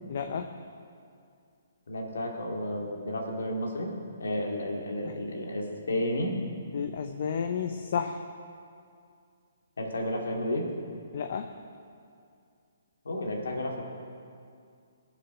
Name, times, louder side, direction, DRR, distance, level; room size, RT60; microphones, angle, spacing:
voice 1, 0.1-0.5 5.0-5.2 6.7-8.2 11.1-11.5, left 7 dB, 55° left, 6 dB, 0.7 m, -32 dB
voice 2, 1.9-3.9 4.2-6.3 9.8-10.7 13.0-13.8, left 1 dB, 85° left, 0 dB, 2.6 m, -32 dB
19.0 x 7.4 x 6.2 m, 2.3 s
hypercardioid pair, 150°, 0 cm